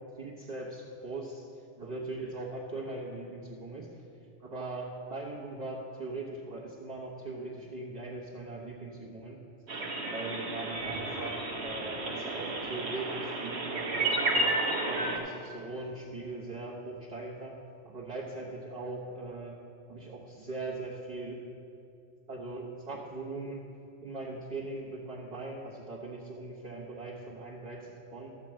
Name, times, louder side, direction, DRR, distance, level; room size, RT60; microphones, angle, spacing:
voice 1, 0.2-1.4 1.8-3.9 4.4-9.4 10.0-14.5 14.8-19.5 19.9-21.4 22.3-23.7 24.0-28.4, right 2 dB, 35° right, -6 dB, 1.3 m, -40 dB
sound 1, 9.7-15.2, right 2 dB, 65° right, 1.3 m, -32 dB
13.0 x 4.5 x 7.6 m, 2.6 s
omnidirectional pair, 1.2 m